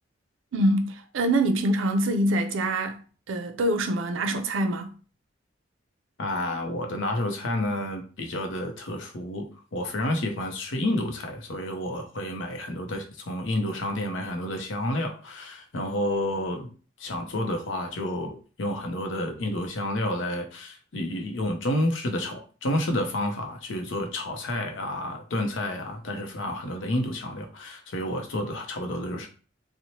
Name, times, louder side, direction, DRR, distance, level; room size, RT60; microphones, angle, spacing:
voice 1, 0.5-3.0 3.3-4.9, right 1 dB, 90° right, 0.4 m, -25 dB
voice 2, 6.2-16.7 17.0-29.3, left 1 dB, 75° left, 0.6 m, -30 dB
2.7 x 2.0 x 2.9 m
head